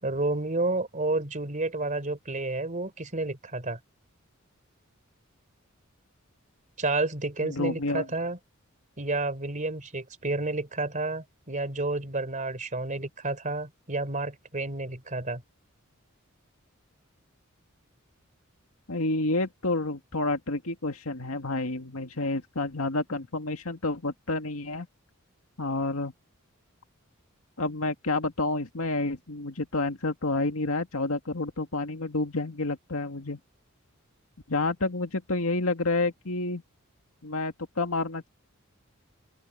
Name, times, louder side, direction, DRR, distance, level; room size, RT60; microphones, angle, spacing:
voice 1, 0.0-3.8 6.8-8.4 9.0-15.4, right 2 dB, 35° right, 3.6 m, -30 dB
voice 2, 7.4-8.1 18.9-24.9 25.6-26.1 27.6-33.4 34.5-36.6 37.2-38.3, left 2 dB, 80° left, 2.1 m, -29 dB
open air
head